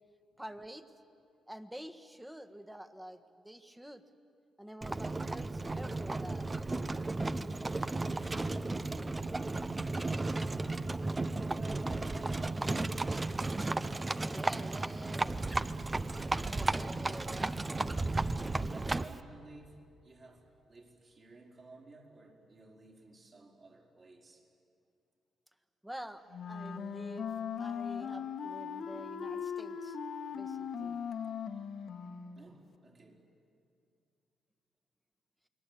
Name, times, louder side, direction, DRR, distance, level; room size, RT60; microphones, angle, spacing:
voice 1, 0.4-0.8 1.5-4.0 4.6-6.5 14.3-15.3 16.3-17.5 25.8-27.3 27.6-30.0 30.3-31.0, equal, 5° right, 10 dB, 1.5 m, -48 dB
Livestock farm animals working animals, 4.8-19.2, right 2 dB, 20° right, 0.8 m, -34 dB
voice 2, 10.3-13.6 18.7-24.5 32.3-33.2, right 3 dB, 40° right, 0 dB, 5.1 m, -56 dB
Wind instrument woodwind instrument, 26.3-32.5, left 7 dB, 65° left, 1.4 m, -39 dB
29.0 x 21.0 x 8.6 m, 2.5 s
cardioid pair, 85°, 0 cm